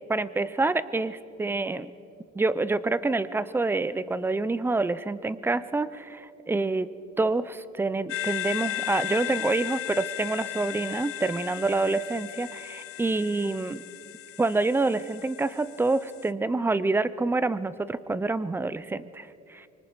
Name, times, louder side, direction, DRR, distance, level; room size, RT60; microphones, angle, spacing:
voice 1, 0.1-1.9 2.4-6.9 7.2-13.8 14.4-19.7, right 3 dB, 10° right, 16 dB, 0.5 m, -27 dB
sound 1, 8.1-16.3, left 13 dB, 50° left, 0.8 m, -36 dB
25.5 x 24.5 x 4.7 m, 2.7 s
cardioid pair, 125°, 30 cm